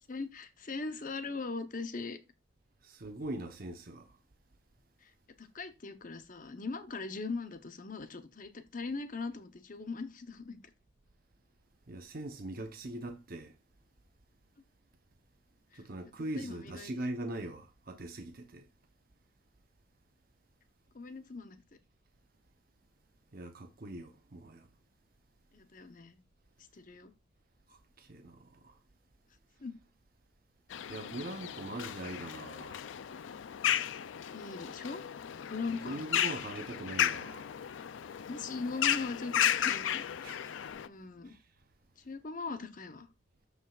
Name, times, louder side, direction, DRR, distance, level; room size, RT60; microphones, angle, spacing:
voice 1, 0.1-2.2 5.0-5.1 5.4-10.6 15.7-15.8 16.4-16.9 20.9-21.6 25.5-26.2 26.7-27.1 29.6-29.7 34.3-35.0 35.5-36.4 38.3-40.4 40.9-41.3 42.0-43.1, left 4 dB, 45° left, 0.8 m, -40 dB
voice 2, 2.8-4.1 11.9-13.5 15.7-18.7 23.3-24.7 27.7-28.8 30.9-32.8 35.7-37.5 40.2-40.6 41.3-41.4, right 1 dB, 50° right, 0.9 m, -42 dB
sound 1, 30.7-40.9, left 10 dB, 80° left, 0.4 m, -34 dB
13.5 x 4.8 x 2.4 m
head